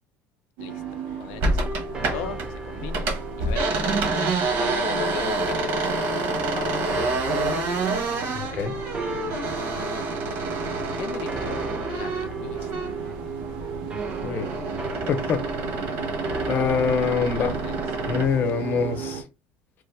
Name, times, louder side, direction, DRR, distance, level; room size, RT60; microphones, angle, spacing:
voice 1, 0.6-3.1 3.4-4.1 4.6-6.3 6.5-6.9 11.0-13.1 17.1-17.8, left 11 dB, 75° left, 0.3 m, -40 dB
sound 1, 0.6-19.2, right 6 dB, 90° right, 0.7 m, -36 dB
sound 2, 0.7-18.6, right 2 dB, 20° right, 0.5 m, -38 dB
sound 3, 1.4-2.5 2.8-13.1 13.5-18.3, right 2 dB, 60° right, 1.2 m, -28 dB
voice 2, 8.3-8.8 14.2-14.5 15.1-15.5 16.5-17.5 18.0-19.2, left 6 dB, 40° left, 0.7 m, -24 dB
3.3 x 2.1 x 3.3 m
cardioid pair, 150°, 5 cm